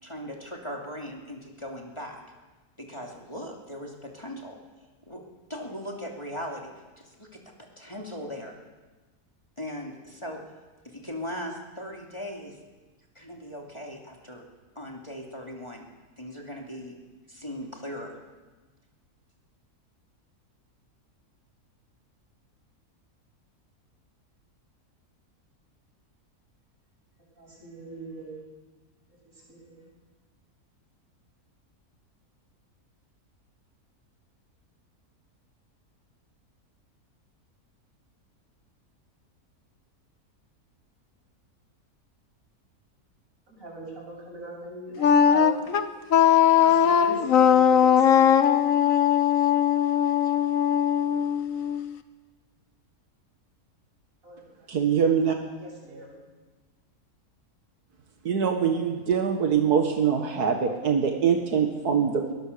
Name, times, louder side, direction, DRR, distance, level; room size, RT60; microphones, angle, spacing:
voice 1, 0.0-2.2 2.8-5.2 5.5-7.4 7.8-8.5 9.6-10.4 10.8-12.6 13.1-14.4 14.7-15.8 16.2-17.0 17.3-18.1, equal, 20° left, 0 dB, 2.9 m, -39 dB
voice 2, 27.4-28.3 29.5-29.8 43.5-45.5 46.6-48.6 54.2-54.7 55.6-56.1, right 1 dB, 60° right, -2 dB, 8.5 m, -41 dB
Wind instrument woodwind instrument, 45.0-51.9, left 9 dB, 60° left, 1.4 m, -20 dB
voice 3, 54.7-55.4 58.3-62.3, right 7 dB, 90° right, 3 dB, 2.2 m, -23 dB
22.5 x 20.5 x 6.9 m, 1.3 s
omnidirectional pair, 1.6 m